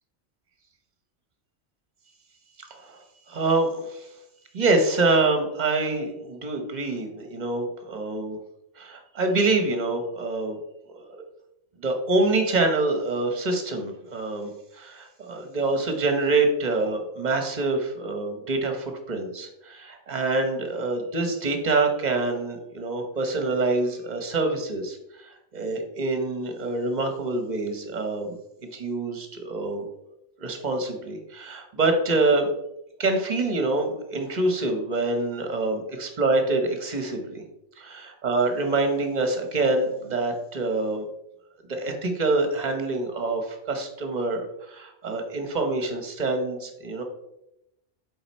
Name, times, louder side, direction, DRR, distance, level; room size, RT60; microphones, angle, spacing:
voice 1, 2.6-3.0 3.3-4.1 4.5-8.4 8.8-10.6 10.9-11.2 11.8-14.5 14.7-28.3 28.7-29.8 30.4-32.5 33.0-37.4 37.8-41.0 41.7-47.0, right 2 dB, 40° right, 5 dB, 1.1 m, -26 dB
7.8 x 3.8 x 4.2 m, 0.84 s
omnidirectional pair, 1.2 m